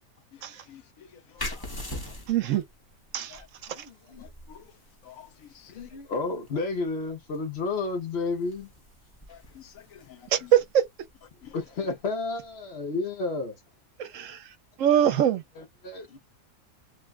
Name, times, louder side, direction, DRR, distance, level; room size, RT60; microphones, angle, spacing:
voice 1, 0.7-1.1 1.5-1.6 4.2-4.6 5.1-5.3 5.8-5.9 9.3-10.2 11.4-11.5, left 10 dB, 75° left, 1.1 m, -49 dB
sound 1, 1.4-12.7, left 1 dB, 20° left, 0.7 m, -44 dB
voice 2, 2.3-2.6 3.1-3.9 10.3-10.8 14.0-15.4, right 10 dB, 70° right, 0.9 m, -24 dB
voice 3, 3.8-4.2 5.7-8.7 11.5-13.6 15.6-16.2, left 3 dB, 50° left, 1.1 m, -31 dB
3.3 x 2.3 x 2.3 m
omnidirectional pair, 1.5 m